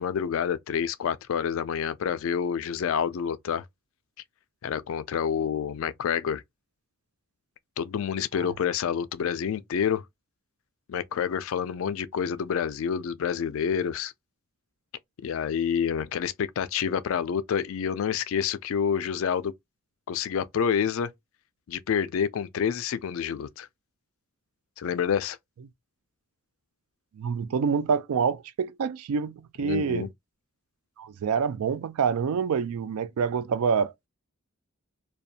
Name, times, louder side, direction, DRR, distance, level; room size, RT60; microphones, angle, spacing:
voice 1, 0.0-3.6 4.6-6.4 7.8-10.0 10.9-14.1 15.2-19.5 20.1-21.1 21.7-23.7 24.8-25.4 29.6-30.1, left 7 dB, 65° left, 0.3 m, -28 dB
voice 2, 27.1-30.1 31.0-34.1, right 6 dB, 80° right, 0.3 m, -27 dB
2.7 x 2.2 x 2.4 m
head